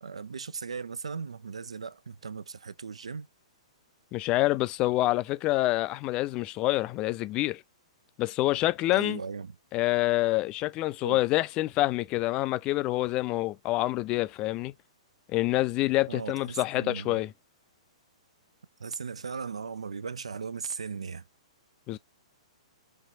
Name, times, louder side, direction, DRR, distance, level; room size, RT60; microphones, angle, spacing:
voice 1, 0.0-3.3 8.9-9.6 11.0-11.2 16.1-17.2 18.8-21.2, right 5 dB, 70° right, 0.4 m, -37 dB
voice 2, 4.1-7.6 8.2-9.2 9.7-14.7 15.3-17.3 21.9-22.0, left 18 dB, 25° left, 0.3 m, -27 dB
4.3 x 3.1 x 2.7 m
figure-of-eight pair, 110°, 3 cm